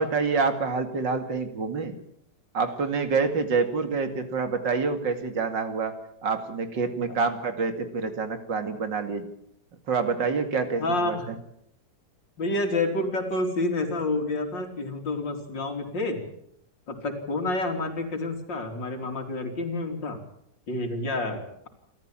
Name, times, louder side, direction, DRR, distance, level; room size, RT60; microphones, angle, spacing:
voice 1, 0.0-2.0 2.5-5.9 6.2-9.3 9.9-11.2, right 4 dB, 80° right, 8 dB, 3.0 m, -27 dB
voice 2, 10.8-11.3 12.4-16.2 16.9-20.2 20.7-21.7, left 2 dB, 85° left, 4 dB, 3.9 m, -29 dB
28.5 x 13.5 x 8.9 m, 0.74 s
omnidirectional pair, 1.9 m